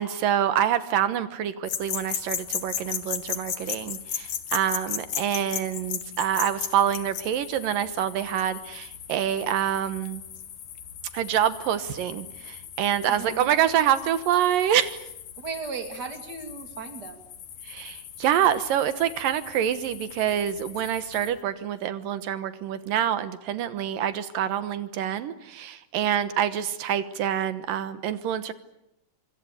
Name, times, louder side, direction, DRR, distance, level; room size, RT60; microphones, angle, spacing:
voice 1, 0.0-10.2 11.1-15.0 17.7-28.5, right 10 dB, 80° right, 12 dB, 2.9 m, -26 dB
sound 1, 1.6-21.4, left 9 dB, 60° left, 3.0 m, -37 dB
voice 2, 13.1-13.5 15.4-17.2, right 5 dB, 30° right, 7 dB, 2.9 m, -36 dB
25.5 x 25.0 x 8.6 m, 0.84 s
omnidirectional pair, 3.9 m